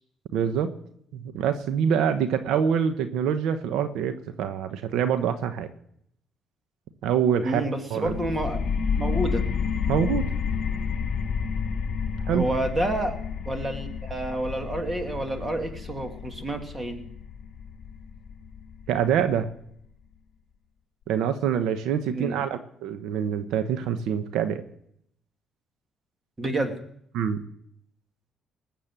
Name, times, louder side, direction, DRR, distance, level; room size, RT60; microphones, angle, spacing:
voice 1, 0.3-0.7 1.1-5.7 7.0-7.6 7.9-8.2 9.9-10.2 12.3-12.5 18.9-19.5 21.1-24.6 27.1-27.4, right 8 dB, 80° right, 9 dB, 1.0 m, -25 dB
voice 2, 7.4-8.6 8.9-9.4 12.3-13.2 13.4-17.0 22.1-22.4 26.4-26.7, right 1 dB, 20° right, 5 dB, 2.6 m, -29 dB
sound 1, 8.0-19.4, left 6 dB, 60° left, 1.6 m, -30 dB
20.0 x 7.5 x 7.5 m, 0.70 s
cardioid pair, 90°, 0 cm